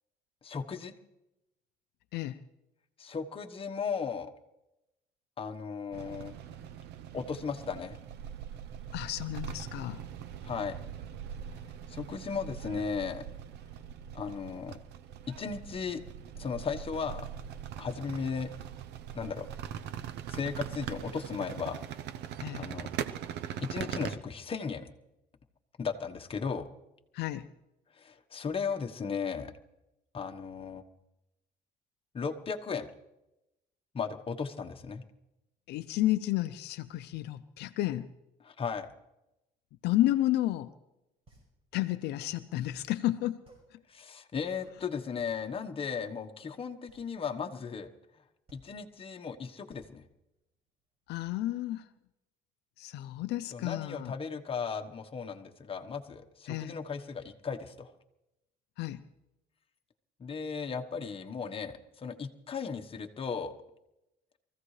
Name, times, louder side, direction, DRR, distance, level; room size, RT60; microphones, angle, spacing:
voice 1, 0.4-0.9 3.0-4.3 5.4-6.3 7.1-8.0 10.4-10.8 11.9-13.2 14.1-14.8 15.3-16.0 16.4-17.3 17.8-18.5 19.1-19.5 20.3-21.8 22.5-22.9 23.6-24.9 25.8-26.7 27.9-29.5 30.1-30.8 32.1-32.9 33.9-35.0 38.4-38.9 43.9-47.9 48.5-50.0 53.5-57.9 60.2-63.5, left 5 dB, 35° left, 5 dB, 1.2 m, -36 dB
sound 1, 5.9-24.2, right 9 dB, 80° right, 0.7 m, -41 dB
voice 2, 8.9-10.0 22.4-22.7 27.1-27.5 35.7-38.1 39.8-40.7 41.7-43.4 43.7-43.8 51.1-51.9 52.8-54.1 56.5-56.8 58.8-59.0, left 15 dB, 80° left, 10 dB, 0.6 m, -31 dB
sound 2, 40.9-51.1, right 2 dB, 35° right, 5.9 m, -63 dB
24.0 x 15.0 x 3.3 m, 0.92 s
cardioid pair, 110°, 17 cm